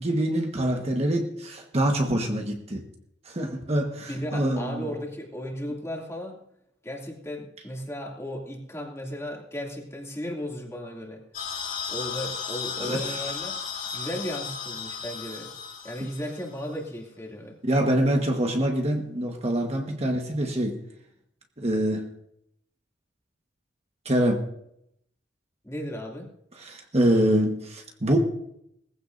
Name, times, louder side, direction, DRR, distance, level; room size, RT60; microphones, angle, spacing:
voice 1, 0.0-2.8 3.2-4.9 12.8-13.2 16.0-16.1 17.6-20.8 21.6-22.1 24.0-24.5 26.6-28.2, right 1 dB, 35° right, 1.4 m, -25 dB
voice 2, 4.1-6.4 6.8-11.2 11.9-13.6 13.9-15.5 15.8-17.6 25.6-26.3, equal, 15° left, 2.6 m, -35 dB
sound 1, 11.3-16.6, left 6 dB, 50° left, 4.4 m, -35 dB
20.0 x 15.0 x 2.7 m
head